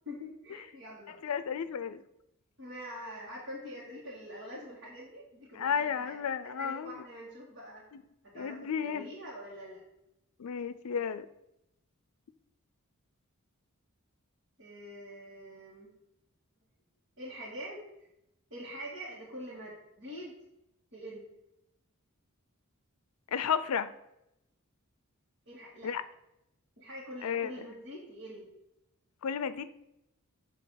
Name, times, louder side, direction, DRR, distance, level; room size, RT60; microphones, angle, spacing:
voice 1, 0.0-1.4 2.6-6.2 6.6-7.8 8.2-9.8 14.6-15.9 17.2-17.9 18.5-20.3 20.9-21.3 25.5-25.9 26.8-28.5, equal, 55° right, -7 dB, 2.0 m, -45 dB
voice 2, 1.2-2.0 5.5-6.9 8.3-9.1 10.4-11.3 23.3-23.9 25.8-26.0 27.2-27.5 29.2-29.7, left 7 dB, 80° left, 13 dB, 0.5 m, -32 dB
7.8 x 3.3 x 6.4 m, 0.85 s
head